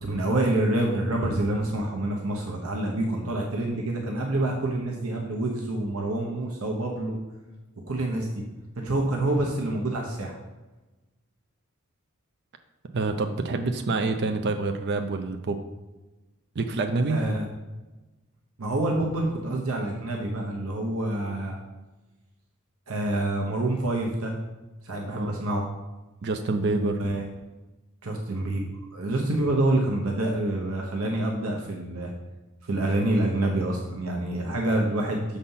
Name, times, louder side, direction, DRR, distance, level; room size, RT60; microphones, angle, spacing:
voice 1, 0.0-7.2 7.9-8.3 8.7-10.4 17.0-17.5 18.6-21.6 22.9-24.3 24.8-25.6 26.7-27.3 28.0-28.6 28.9-32.1 32.6-35.2, right 1 dB, 80° right, 0 dB, 1.0 m, -27 dB
voice 2, 12.9-15.6 16.6-17.2 25.1-25.4 26.2-27.0, right 3 dB, 50° right, 6 dB, 0.5 m, -27 dB
6.8 x 4.2 x 5.5 m, 1.1 s
head